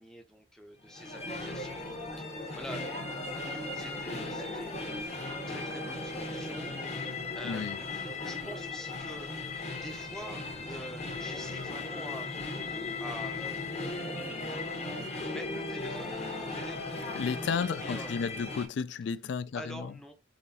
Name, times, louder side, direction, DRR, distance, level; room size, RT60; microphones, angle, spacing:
voice 1, 0.0-2.1 2.5-2.9 3.2-12.3 12.7-13.8 15.2-16.8 17.4-18.3 19.5-20.1, equal, 5° left, 0.5 m, -47 dB
sound 1, 0.9-18.7, left 2 dB, 35° left, 0.9 m, -37 dB
voice 2, 7.4-7.8 17.1-19.9, left 6 dB, 65° left, 0.3 m, -33 dB
3.9 x 3.1 x 4.0 m
head